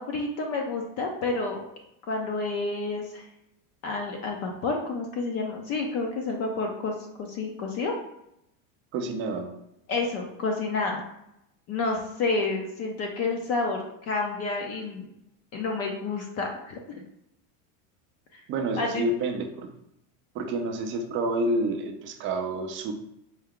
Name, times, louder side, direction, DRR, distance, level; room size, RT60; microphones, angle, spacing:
voice 1, 0.0-1.6 2.1-3.2 3.8-6.9 7.3-7.9 9.9-11.0 11.7-15.1 15.5-17.0 18.8-19.0, left 3 dB, 35° left, 1 dB, 0.5 m, -29 dB
voice 2, 8.9-9.5 18.5-19.7 20.3-22.9, right 2 dB, 30° right, 4 dB, 0.4 m, -29 dB
4.6 x 2.2 x 3.6 m, 0.81 s
supercardioid pair, 145°, 44 cm